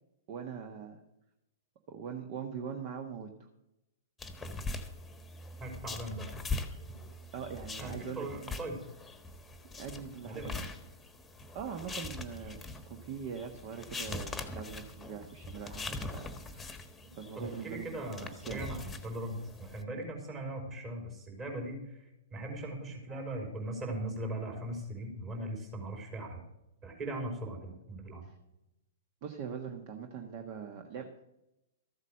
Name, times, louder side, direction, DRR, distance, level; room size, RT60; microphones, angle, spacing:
voice 1, 0.3-1.0 1.9-3.3 7.3-8.5 9.6-10.6 11.5-12.6 12.9-16.8 17.2-18.6 28.2-28.4 29.2-31.1, right 7 dB, 45° right, 6 dB, 1.3 m, -42 dB
sound 1, 4.2-19.8, left 3 dB, 10° left, 1.4 m, -42 dB
voice 2, 5.6-6.2 7.8-8.9 10.2-10.6 17.4-22.0 22.3-26.4 26.8-28.2, right 1 dB, 25° right, 1 dB, 4.6 m, -39 dB
14.0 x 8.1 x 6.5 m, 0.89 s
figure-of-eight pair, 110°, 0 cm